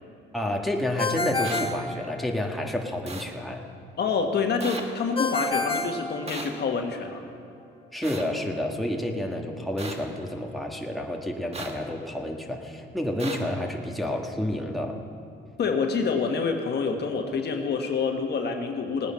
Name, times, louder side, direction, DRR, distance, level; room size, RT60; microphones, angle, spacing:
voice 1, 0.3-3.6 7.9-15.0, left 1 dB, ahead, 0 dB, 1.5 m, -30 dB
Ringtone, 1.0-2.7 5.2-6.8, left 3 dB, 30° left, 1.1 m, -29 dB
sound 1, 1.4-1.6 3.1-3.2 4.6-4.8 6.3-6.5 8.0-8.2 9.8-9.9 11.5-11.7 13.2-13.4, right 3 dB, 30° right, 1.6 m, -35 dB
voice 2, 4.0-7.2 15.6-19.1, left 5 dB, 55° left, 4 dB, 1.4 m, -27 dB
18.5 x 9.4 x 5.7 m, 2.4 s
cardioid pair, 90°, 20 cm